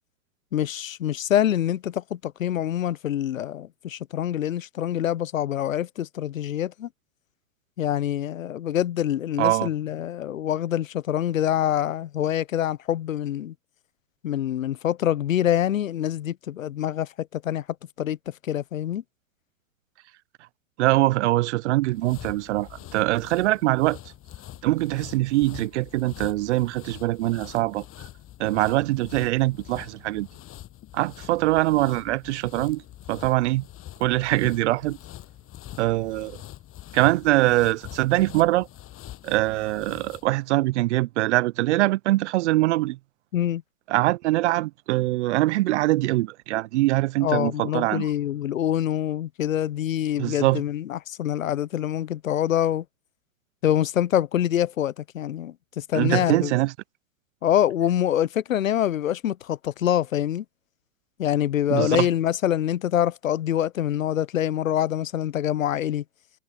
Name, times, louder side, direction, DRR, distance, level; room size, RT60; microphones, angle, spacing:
voice 1, 0.5-6.9 7.8-13.5 14.2-17.6 18.0-18.2 18.4-19.0 43.3-43.6 47.2-52.8 53.6-56.5 57.4-60.4 61.2-66.0, left 11 dB, 85° left, 0.9 m, -25 dB
voice 2, 9.4-9.7 20.8-24.0 24.6-27.8 28.4-30.3 30.9-32.8 33.1-33.6 34.0-35.0 35.8-36.4 36.9-38.7 39.2-43.0 43.9-48.1 50.2-50.6 55.9-56.7 61.7-62.1, right 18 dB, 60° right, 0.6 m, -23 dB
sound 1, 21.7-40.4, left 13 dB, 35° left, 7.9 m, -44 dB
hypercardioid pair, 110°, 39 cm